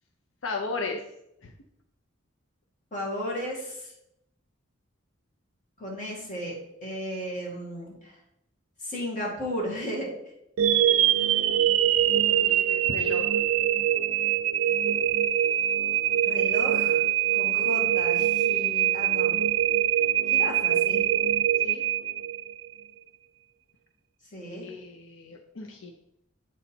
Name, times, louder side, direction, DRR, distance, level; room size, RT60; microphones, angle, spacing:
voice 1, 0.4-1.0 1.4-1.5 12.3-13.3 21.6-21.8 24.6-25.9, left 3 dB, 80° left, 3 dB, 0.6 m, -35 dB
voice 2, 2.9-3.9 5.8-6.6 6.8-8.1 8.8-10.1 16.2-17.0 17.3-19.4 20.3-21.1 24.3-24.7, equal, 40° left, -3 dB, 2.3 m, -34 dB
sound 1, 10.6-22.7, right 11 dB, 80° right, 0.4 m, -23 dB
8.4 x 4.0 x 4.3 m, 0.79 s
head